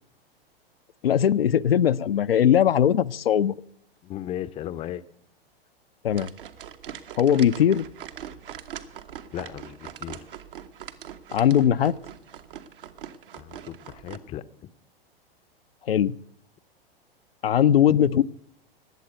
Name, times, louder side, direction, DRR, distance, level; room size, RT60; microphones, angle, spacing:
voice 1, 1.0-3.5 6.0-6.3 7.2-7.9 11.3-12.0 15.9-16.2 17.4-18.2, left 9 dB, 70° left, 11 dB, 0.6 m, -20 dB
voice 2, 4.0-5.0 9.3-10.2 13.4-14.4, left 11 dB, 20° left, 14 dB, 0.6 m, -36 dB
sound 1, 6.1-14.2, right 9 dB, 60° right, 1.2 m, -42 dB
20.0 x 8.0 x 8.0 m, 0.63 s
figure-of-eight pair, 100°, 30 cm